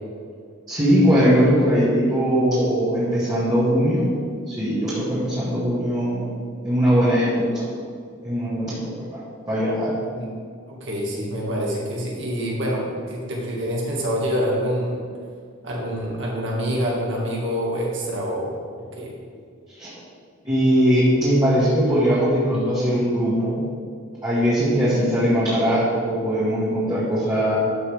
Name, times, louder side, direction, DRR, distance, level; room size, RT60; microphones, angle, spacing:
voice 1, 0.7-4.1 4.5-6.3 6.6-7.6 8.2-8.8 9.1-9.2 9.5-9.9 19.8-19.9 20.4-23.6 24.2-27.6, equal, 20° right, -11 dB, 2.0 m, -20 dB
voice 2, 10.7-15.1 15.6-19.2, equal, 65° right, -3 dB, 2.1 m, -26 dB
12.5 x 5.7 x 3.6 m, 2.1 s
head